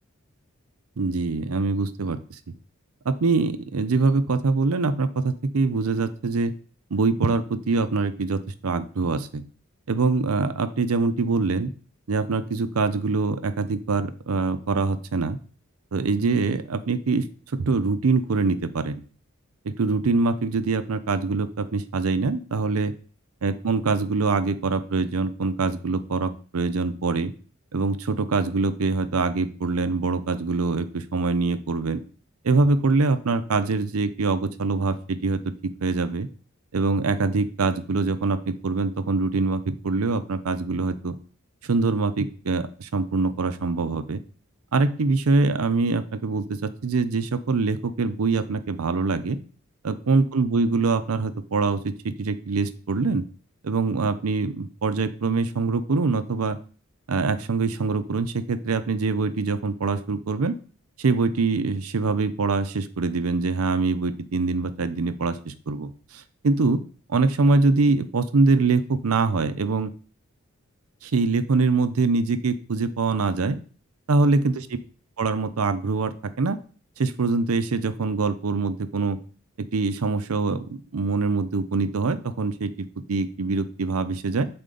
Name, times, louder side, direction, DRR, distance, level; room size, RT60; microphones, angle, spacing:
voice 1, 1.0-2.4 3.0-6.5 6.9-9.4 9.9-11.7 12.1-15.4 15.9-17.3 17.5-19.0 19.6-22.9 23.4-27.3 27.7-32.0 32.4-36.3 36.7-41.1 41.6-44.2 44.7-49.4 49.8-53.3 53.6-56.6 57.1-60.5 61.0-66.8 67.1-69.9 71.0-73.6 74.1-74.5 75.2-76.6 77.0-79.2 79.6-84.5, right 3 dB, 90° right, 11 dB, 0.6 m, -24 dB
6.7 x 4.3 x 3.8 m, 0.41 s
head